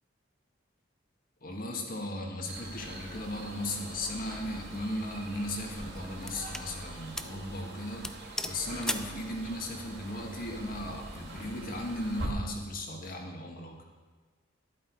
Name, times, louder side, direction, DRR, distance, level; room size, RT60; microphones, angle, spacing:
voice 1, 1.4-8.0 8.5-13.8, left 1 dB, 50° left, 2 dB, 1.7 m, -36 dB
sound 1, 2.5-12.3, right 1 dB, 60° right, 2.2 m, -44 dB
sound 2, 4.5-4.8 5.5-6.7 7.2-7.4 7.7-7.8 8.0-9.2, left 1 dB, 5° left, 0.4 m, -37 dB
12.0 x 10.5 x 4.7 m, 1.4 s
head